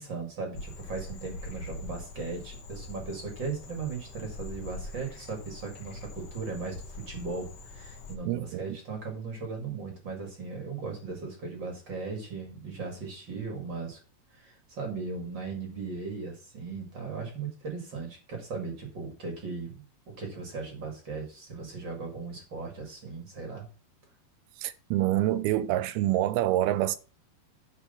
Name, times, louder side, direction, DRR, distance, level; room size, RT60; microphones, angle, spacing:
voice 1, 0.0-14.0 14.3-23.7, right 4 dB, 35° right, 2.2 m, -37 dB
Frog, 0.5-8.1, left 3 dB, 75° left, 1.3 m, -43 dB
voice 2, 8.3-8.8 24.6-27.0, right 14 dB, 80° right, 2.4 m, -26 dB
10.0 x 4.6 x 5.6 m
omnidirectional pair, 4.5 m